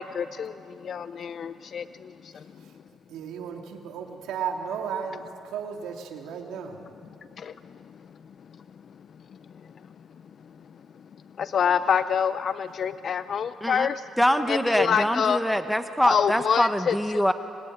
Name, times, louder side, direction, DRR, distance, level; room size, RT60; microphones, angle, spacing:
voice 1, 0.0-2.4 7.4-7.5 11.4-14.0 14.5-15.4 16.0-17.2, left 7 dB, 55° left, 13 dB, 0.6 m, -26 dB
voice 2, 3.1-6.8, right 7 dB, 85° right, 2 dB, 2.4 m, -34 dB
voice 3, 14.2-17.3, equal, ahead, 8 dB, 1.3 m, -24 dB
25.5 x 23.0 x 9.9 m, 2.8 s
cardioid pair, 90°, 0 cm